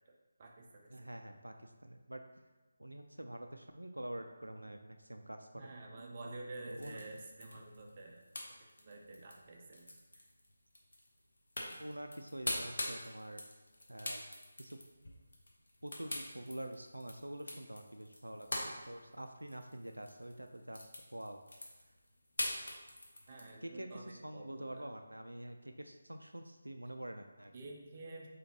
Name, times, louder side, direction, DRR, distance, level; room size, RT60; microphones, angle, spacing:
voice 1, 0.4-0.9 5.6-8.2 8.8-9.9 23.3-24.9 27.5-28.3, right 2 dB, 30° right, 0 dB, 0.5 m, -49 dB
voice 2, 0.9-2.2 2.8-5.7 6.7-7.0 11.8-13.4 13.9-14.2 14.6-14.8 15.8-21.4 23.6-27.5, right 1 dB, 85° right, 6 dB, 0.3 m, -46 dB
sound 1, 6.7-23.5, left 1 dB, 65° left, 0.8 m, -44 dB
3.8 x 3.4 x 2.9 m, 1.2 s
figure-of-eight pair, 155°, 0 cm